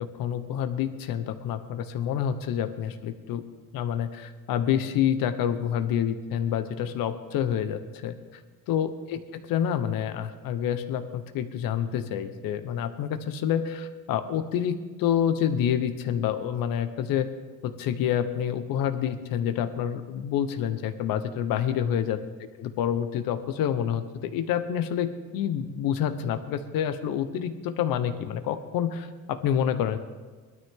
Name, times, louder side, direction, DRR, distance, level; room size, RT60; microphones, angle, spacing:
voice 1, 0.0-3.4 3.7-8.1 8.7-9.2 9.5-17.3 17.6-22.2 22.6-30.0, left 9 dB, 70° left, 10 dB, 1.1 m, -28 dB
19.5 x 12.5 x 3.7 m, 1.4 s
cardioid pair, 140°, 35 cm